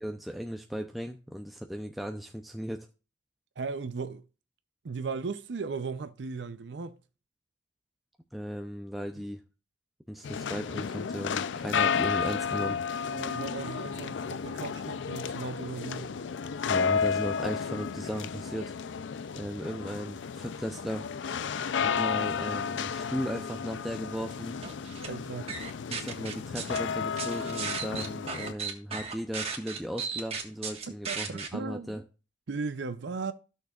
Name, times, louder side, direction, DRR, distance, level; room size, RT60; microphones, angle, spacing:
voice 1, 0.0-2.9 8.3-9.4 10.1-12.8 16.7-18.8 19.4-21.1 21.8-24.5 25.9-32.0, equal, ahead, 0.5 m, -36 dB
voice 2, 3.6-4.2 4.8-7.0 9.2-9.3 13.1-16.2 19.4-19.5 25.0-25.5 31.1-31.9 32.5-33.3, right 4 dB, 75° right, 0.6 m, -37 dB
sound 1, 10.2-28.5, left 6 dB, 90° left, 0.4 m, -32 dB
sound 2, 24.6-25.1 25.5-26.8 27.2-31.5, right 5 dB, 35° right, 1.5 m, -35 dB
14.5 x 6.5 x 2.4 m
head